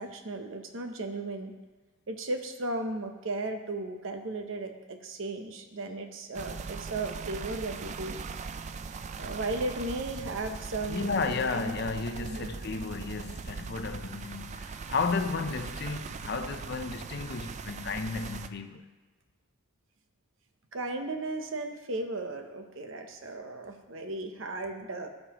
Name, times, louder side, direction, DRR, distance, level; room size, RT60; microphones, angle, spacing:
voice 1, 0.0-1.5 2.1-8.2 9.2-11.7 12.2-12.5 20.7-25.1, right 2 dB, 65° right, 0.8 m, -35 dB
sound 1, 6.3-18.5, right 5 dB, 35° right, 0.3 m, -40 dB
voice 2, 10.9-18.8, left 4 dB, 50° left, 0.6 m, -33 dB
16.0 x 5.4 x 3.0 m
head